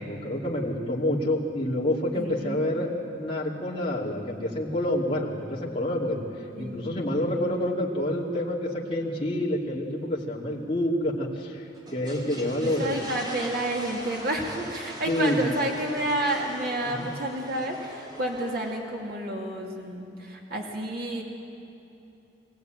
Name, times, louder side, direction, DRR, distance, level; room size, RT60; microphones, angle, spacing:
voice 1, 0.0-6.2 6.6-11.6 11.9-12.9 15.1-15.5 16.8-17.1, left 1 dB, 35° left, -6 dB, 2.6 m, -28 dB
voice 2, 2.1-2.7 6.5-6.8 12.6-21.2, right 1 dB, 60° right, 0 dB, 2.8 m, -30 dB
sound 1, 11.7-18.8, equal, 25° right, 3.3 m, -41 dB
24.0 x 17.0 x 9.2 m, 2.9 s
head